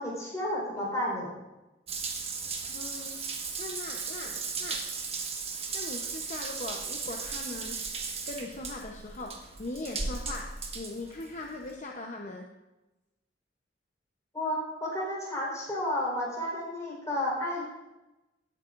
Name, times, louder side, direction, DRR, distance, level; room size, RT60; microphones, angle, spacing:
voice 1, 0.0-1.3 14.3-17.6, left 1 dB, 20° left, -5 dB, 4.2 m, -32 dB
Water tap faucet / Bathtub (filling or washing) / Drip, 1.9-11.7, right 5 dB, 35° right, 1.3 m, -36 dB
voice 2, 2.7-3.2 3.6-4.8 5.7-7.8 8.2-10.5 10.7-12.5, left 2 dB, 45° left, 1 dB, 0.8 m, -40 dB
18.0 x 8.5 x 2.5 m, 1.0 s
head